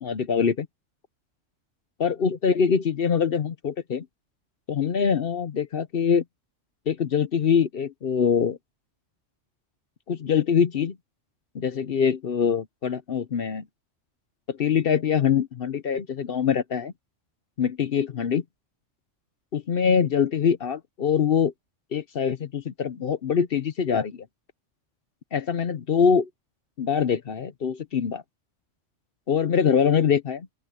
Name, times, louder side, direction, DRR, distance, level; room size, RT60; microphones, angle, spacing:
voice 1, 0.0-0.7 2.0-4.1 4.7-6.2 6.9-8.6 10.1-11.0 11.5-13.6 14.5-16.9 17.6-18.4 19.5-21.5 21.9-24.3 25.3-26.3 26.8-28.2 29.3-30.5, left 7 dB, 55° left, 0.9 m, -24 dB
open air
omnidirectional pair, 1.3 m